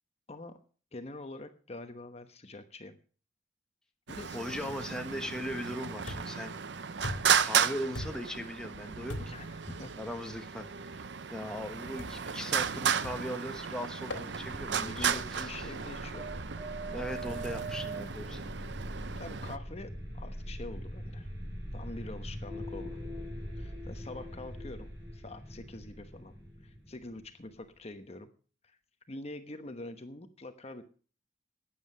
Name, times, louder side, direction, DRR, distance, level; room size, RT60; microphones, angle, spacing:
voice 1, 0.9-3.0 4.1-4.9 9.2-9.9 14.7-16.4 19.2-21.3 21.7-23.0 23.6-26.3 26.6-28.3 28.6-28.8 29.1-30.8, left 2 dB, 35° left, 8 dB, 1.0 m, -45 dB
Traffic noise roadway noise, 4.1-19.6, right 7 dB, 70° right, 0.7 m, -34 dB
voice 2, 4.3-6.6 7.4-9.4 10.0-11.0 11.3-15.5 16.9-18.6, equal, 5° left, 5 dB, 1.3 m, -39 dB
sound 1, 6.1-6.5 7.0-7.5 7.9-8.4 9.1-9.5 10.3-10.5 12.0-12.3 13.0-13.4 14.1-14.3 15.0-15.3, left 1 dB, 80° left, 2.4 m, -41 dB
sound 2, 14.2-27.8, right 1 dB, 10° right, 7.2 m, -42 dB
13.0 x 9.5 x 6.6 m, 0.40 s
head